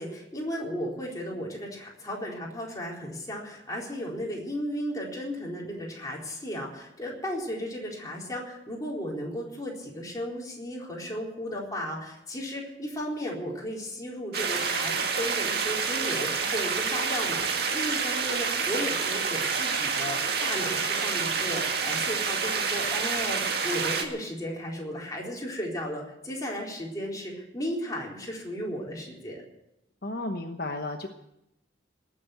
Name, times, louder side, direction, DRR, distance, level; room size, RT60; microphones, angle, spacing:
voice 1, 0.0-29.4, equal, 20° left, -3 dB, 4.1 m, -35 dB
sound 1, 14.3-24.1, right 5 dB, 60° right, 2.0 m, -28 dB
voice 2, 30.0-31.1, left 2 dB, 60° left, 4 dB, 1.1 m, -33 dB
19.0 x 7.7 x 9.1 m, 0.86 s
head